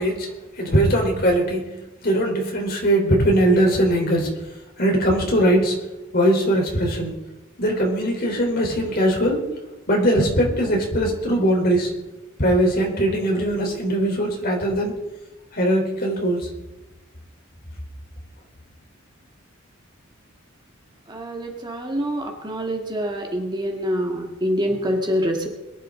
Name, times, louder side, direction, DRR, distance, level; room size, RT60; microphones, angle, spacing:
voice 1, 0.0-4.3 4.8-5.9 6.1-7.1 7.6-9.4 9.9-11.9 12.4-14.9 15.5-16.5, right 1 dB, 50° left, 1 dB, 3.8 m, -20 dB
voice 2, 21.1-25.5, equal, 20° right, 1 dB, 1.9 m, -25 dB
22.5 x 11.5 x 3.8 m, 1.0 s
head